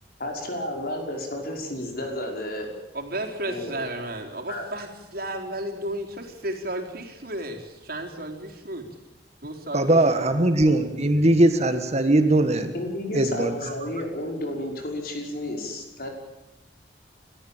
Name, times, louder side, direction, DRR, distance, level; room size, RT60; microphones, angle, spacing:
voice 1, 0.2-2.7 3.5-3.7 4.5-4.7 12.7-16.1, left 1 dB, 55° left, 2 dB, 5.6 m, -32 dB
voice 2, 2.9-8.9 9.4-10.3, right 1 dB, 60° right, 1 dB, 4.2 m, -33 dB
voice 3, 9.7-12.7 13.1-13.9, right 1 dB, 40° right, 8 dB, 1.7 m, -20 dB
29.5 x 14.0 x 9.0 m, 0.95 s
head